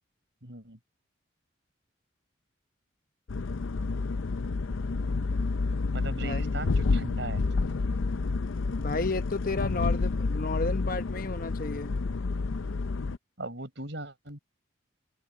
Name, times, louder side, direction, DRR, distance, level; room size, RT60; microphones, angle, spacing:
voice 1, 0.4-0.8 5.9-7.4 13.4-14.4, right 2 dB, 65° right, 4.9 m, -38 dB
sound 1, 3.3-13.2, left 3 dB, 85° left, 0.6 m, -29 dB
voice 2, 6.2-6.5 8.8-12.0, left 3 dB, 45° left, 1.0 m, -33 dB
head